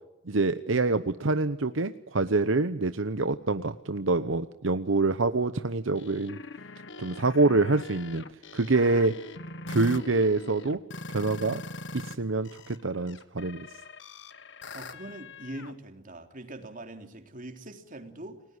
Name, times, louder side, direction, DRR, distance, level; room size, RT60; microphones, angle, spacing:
voice 1, 0.3-6.4 7.0-8.2 8.5-9.1 9.7-10.8 11.1-11.6 11.9-13.7, right 3 dB, 75° right, 10 dB, 0.9 m, -26 dB
sound 1, 6.0-12.2 12.5-15.7, left 2 dB, 65° left, 1.6 m, -42 dB
voice 2, 14.7-18.4, right 1 dB, 45° right, 5 dB, 3.5 m, -42 dB
29.5 x 19.0 x 8.0 m, 0.99 s
head